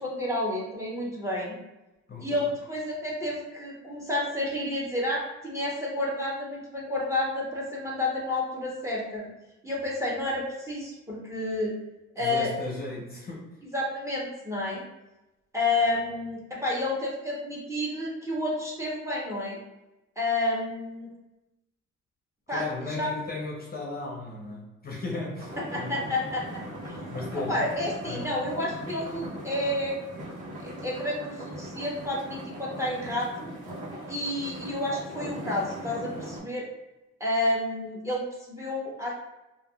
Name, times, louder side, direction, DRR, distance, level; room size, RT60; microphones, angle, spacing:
voice 1, 0.0-1.6 2.2-9.2 9.6-11.7 12.2-12.5 13.7-14.8 15.5-19.6 20.2-21.1 22.5-22.6 23.0-23.1 25.7-26.4 26.9-27.0 27.5-30.0 30.6-33.5 34.1-36.7 37.2-39.1, left 1 dB, 10° right, -5 dB, 0.9 m, -30 dB
voice 2, 2.1-2.5 12.2-13.5 22.5-25.9 27.1-27.6 28.1-28.3, left 2 dB, 30° left, -3 dB, 0.7 m, -36 dB
sound 1, 25.4-36.4, equal, 85° right, 1.0 m, -39 dB
3.4 x 2.4 x 2.3 m, 1.0 s
cardioid pair, 90°, 30 cm